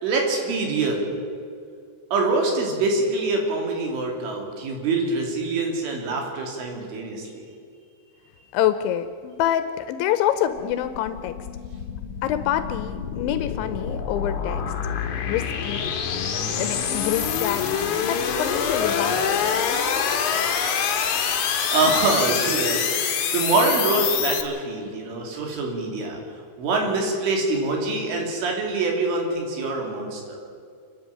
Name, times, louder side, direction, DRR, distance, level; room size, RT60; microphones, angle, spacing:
voice 1, 0.0-1.2 2.1-7.5 21.7-26.2 26.6-30.4, right 3 dB, 75° right, 1 dB, 5.4 m, -25 dB
voice 2, 8.5-11.4 12.2-14.7 15.2-15.9 16.3-17.7 18.1-19.4, left 11 dB, 80° left, 11 dB, 2.9 m, -26 dB
sound 1, 10.5-24.4, left 7 dB, 65° left, 2.0 m, -26 dB
29.0 x 10.5 x 8.7 m, 2.3 s
omnidirectional pair, 5.8 m